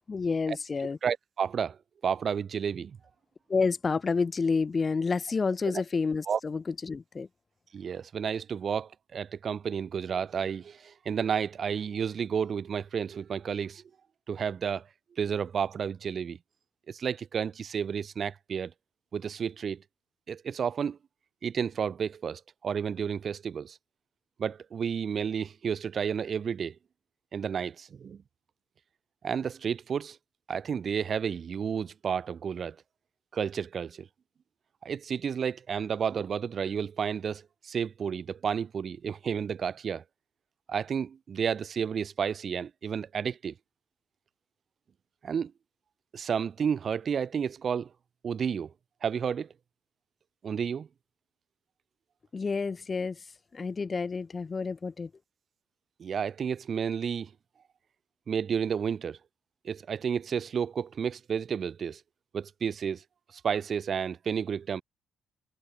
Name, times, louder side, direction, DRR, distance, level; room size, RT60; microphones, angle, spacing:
voice 1, 0.1-1.0 3.5-7.3 52.3-53.3 53.5-55.1, left 4 dB, 35° left, 3.8 m, -29 dB
voice 2, 1.0-3.0 6.3-6.4 7.7-13.8 14.3-14.9 15.2-16.4 16.9-18.7 19.1-19.8 20.3-21.0 21.4-23.8 24.4-26.7 27.3-28.2 29.2-30.2 30.5-32.8 33.3-34.1 34.8-40.0 40.7-43.5 45.2-45.5 46.1-47.9 48.2-48.7 49.0-49.5 50.4-50.9 56.0-57.3 58.3-59.2 59.6-62.0 62.3-63.0 63.3-64.8, right 7 dB, 50° right, 1.0 m, -31 dB
cardioid pair, 90°, 0 cm